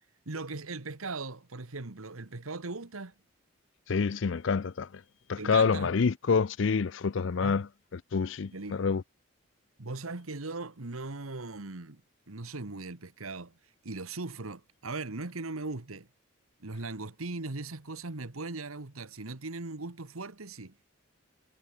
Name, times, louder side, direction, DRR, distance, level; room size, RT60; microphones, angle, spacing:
voice 1, 0.2-3.1 5.4-5.9 7.4-7.6 8.5-8.8 9.8-12.0 12.3-13.5 13.8-16.1 16.6-20.8, right 3 dB, 90° right, 1.6 m, -39 dB
voice 2, 3.9-5.0 5.3-7.7 7.9-9.0, left 5 dB, 60° left, 0.5 m, -27 dB
head